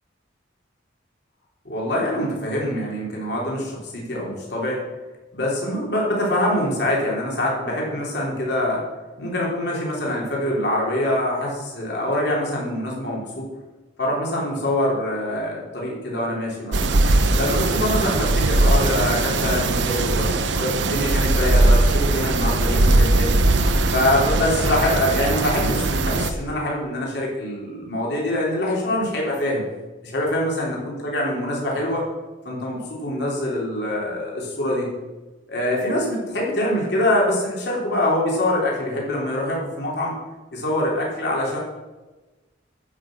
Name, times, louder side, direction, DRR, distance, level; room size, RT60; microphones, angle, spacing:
voice 1, 1.6-4.8 5.3-8.8 9.2-13.5 14.0-16.8 17.3-20.3 20.6-23.3 23.9-29.6 30.0-32.0 32.4-34.9 35.5-40.1 40.5-41.6, left 1 dB, 60° left, -3 dB, 3.4 m, -24 dB
sound 1, 16.7-26.3, right 2 dB, 75° right, 0.9 m, -20 dB
13.5 x 5.9 x 6.4 m, 1.2 s
head